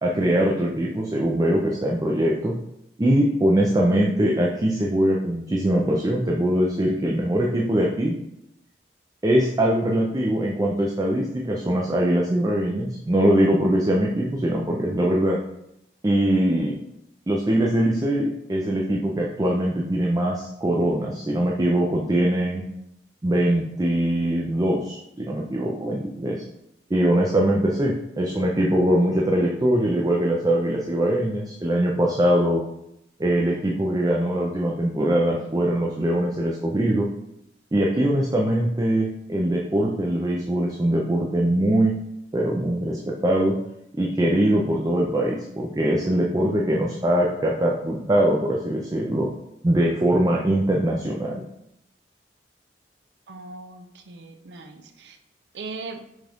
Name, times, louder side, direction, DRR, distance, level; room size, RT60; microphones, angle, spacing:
voice 1, 0.0-2.5 3.0-8.1 9.2-15.4 16.0-16.8 17.3-22.6 23.2-26.4 26.9-32.6 33.2-37.1 37.7-41.9 42.3-43.6 43.9-49.3 49.6-51.4, right 1 dB, 20° right, -2 dB, 0.4 m, -22 dB
voice 2, 53.3-55.2 55.5-56.1, right 3 dB, 80° right, 6 dB, 0.5 m, -39 dB
6.2 x 2.4 x 3.4 m, 0.80 s
head